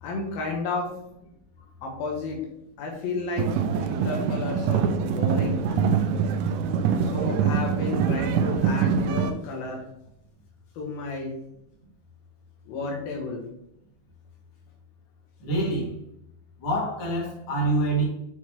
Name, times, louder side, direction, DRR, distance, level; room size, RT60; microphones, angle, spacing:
voice 1, 0.0-1.0 1.8-2.4 2.8-5.6 7.0-9.8 10.8-11.4 12.7-13.4, left 3 dB, 80° left, -1 dB, 2.9 m, -32 dB
sound 1, 3.4-9.3, right 6 dB, 85° right, 1.9 m, -24 dB
Keyboard (musical), 5.7-9.2, right 5 dB, 65° right, 2.2 m, -36 dB
voice 2, 15.4-15.9 16.6-18.0, right 2 dB, 40° left, -5 dB, 2.6 m, -26 dB
8.0 x 4.6 x 3.0 m, 0.78 s
omnidirectional pair, 4.3 m